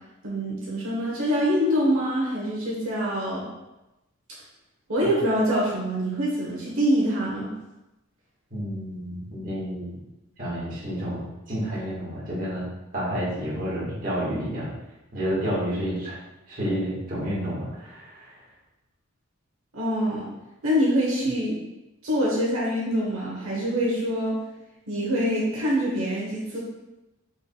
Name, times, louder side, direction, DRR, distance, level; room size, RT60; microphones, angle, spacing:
voice 1, 0.2-3.4 4.9-7.5 19.7-20.3 20.6-21.6 22.0-24.4 24.9-26.6, equal, 75° right, -5 dB, 1.0 m, -25 dB
voice 2, 8.5-9.9 10.4-12.6 12.9-14.7 15.1-16.2 16.5-18.4, equal, 40° right, -7 dB, 1.5 m, -30 dB
4.5 x 4.4 x 2.2 m, 0.98 s
head